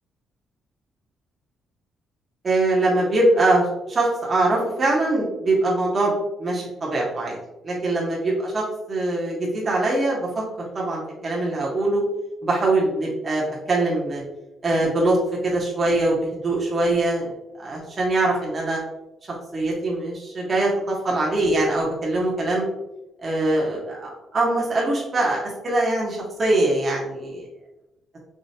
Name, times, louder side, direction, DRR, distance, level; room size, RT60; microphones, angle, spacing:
voice 1, 2.4-7.4 7.6-10.3 10.7-12.0 12.4-14.2 14.6-15.2 15.4-17.3 17.6-18.8 19.5-22.7 23.2-27.4, right 2 dB, 40° right, -4 dB, 1.2 m, -22 dB
5.0 x 3.1 x 2.8 m, 0.95 s
cardioid pair, 90°, 0 cm